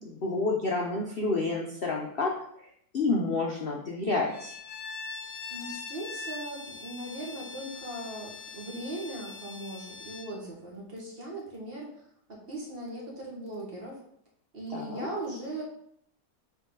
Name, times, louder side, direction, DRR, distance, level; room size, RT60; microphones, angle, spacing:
voice 1, 0.0-2.3 2.6-4.5 14.7-15.1, left 3 dB, 50° left, -1 dB, 0.7 m, -29 dB
Bowed string instrument, 4.3-10.4, left 4 dB, 80° left, 1.4 m, -42 dB
voice 2, 5.5-11.9 12.3-14.0 14.5-15.6, right 1 dB, 35° right, -3 dB, 1.6 m, -39 dB
7.1 x 3.7 x 3.9 m, 0.69 s
omnidirectional pair, 1.8 m